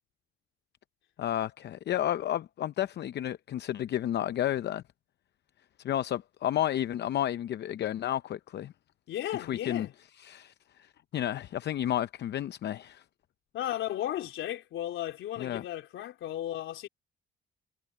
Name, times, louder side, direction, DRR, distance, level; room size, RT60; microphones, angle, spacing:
voice 1, 1.2-4.8 5.8-8.7 9.5-9.9 10.2-13.0 15.4-15.6, left 11 dB, 60° left, 0.6 m, -31 dB
voice 2, 9.1-9.9 13.5-16.9, left 12 dB, 80° left, 3.7 m, -35 dB
cardioid pair, 90°, 20 cm